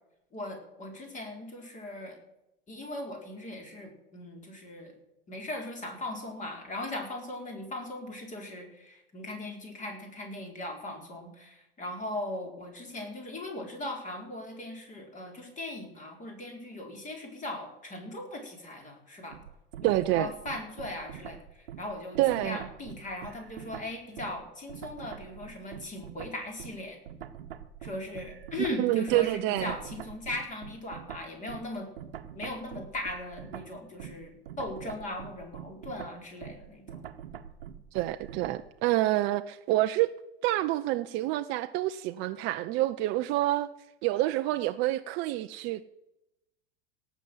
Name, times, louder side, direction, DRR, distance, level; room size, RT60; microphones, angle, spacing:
voice 1, 0.3-2.2 2.7-4.9 5.3-19.4 19.8-27.0 27.8-31.9 32.3-37.0, left 1 dB, 25° left, 4.2 m, -39 dB
sound 1, 19.3-24.4 24.7-38.7, right 9 dB, 65° right, 1.1 m, -45 dB
voice 2, 19.8-20.3 22.2-22.6 28.6-29.7 37.9-40.1 40.4-43.7 44.0-45.8, right 16 dB, 40° right, 0.6 m, -27 dB
17.5 x 7.0 x 7.7 m
figure-of-eight pair, 90°, 31 cm